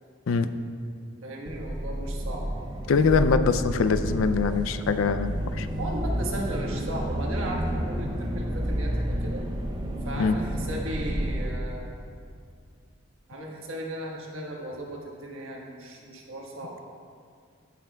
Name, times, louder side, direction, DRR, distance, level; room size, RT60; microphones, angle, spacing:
voice 1, 1.2-2.5 5.8-9.4 10.0-11.9 13.3-16.8, right 1 dB, 85° right, -1 dB, 1.4 m, -36 dB
sound 1, 1.4-11.5, equal, 20° right, 0.5 m, -30 dB
voice 2, 2.9-5.7 10.2-10.4, left 5 dB, 75° left, 11 dB, 0.4 m, -23 dB
15.5 x 5.9 x 2.3 m, 2.2 s
head